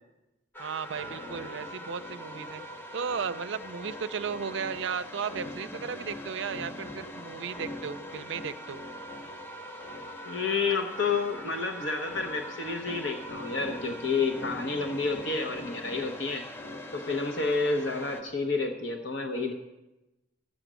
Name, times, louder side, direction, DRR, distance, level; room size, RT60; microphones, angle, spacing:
sound 1, 0.5-18.2, equal, 10° left, 0.5 m, -44 dB
voice 1, 0.6-2.6 2.9-8.8, right 6 dB, 65° right, 13 dB, 0.4 m, -35 dB
sound 2, 0.8-18.7, equal, 35° left, 1.6 m, -46 dB
voice 2, 10.2-16.4 16.9-19.5, left 4 dB, 65° left, 5 dB, 0.9 m, -30 dB
11.5 x 7.9 x 6.2 m, 0.99 s
head